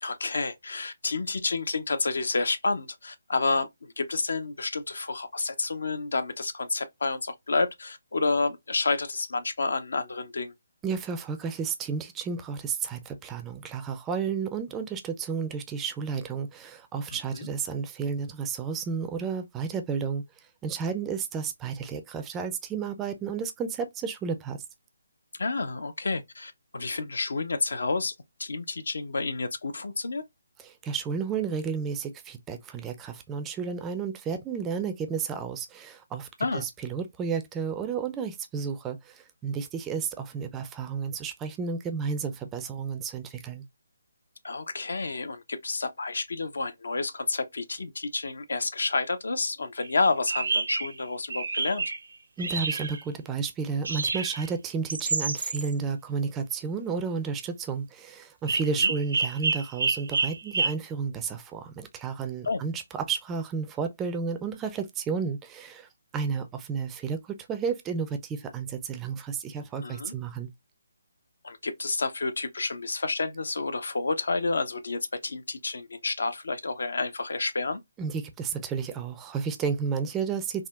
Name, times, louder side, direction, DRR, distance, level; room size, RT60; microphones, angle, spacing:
voice 1, 0.0-10.5 17.3-17.5 25.4-28.1 28.4-30.2 36.4-36.7 44.4-51.9 58.8-58.9 62.4-62.6 69.8-70.1 71.4-77.8, left 3 dB, 75° left, 0.5 m, -30 dB
voice 2, 10.8-20.2 20.6-24.6 30.6-36.3 36.5-43.6 52.4-70.5 78.0-80.7, right 5 dB, 15° right, 0.3 m, -32 dB
sound 1, 49.8-49.9 50.3-50.9 51.3-52.0 52.4-53.0 53.8-54.5 54.9-55.7 58.5-60.7, right 4 dB, 70° right, 0.5 m, -28 dB
3.5 x 2.1 x 2.3 m
figure-of-eight pair, 155°, 0 cm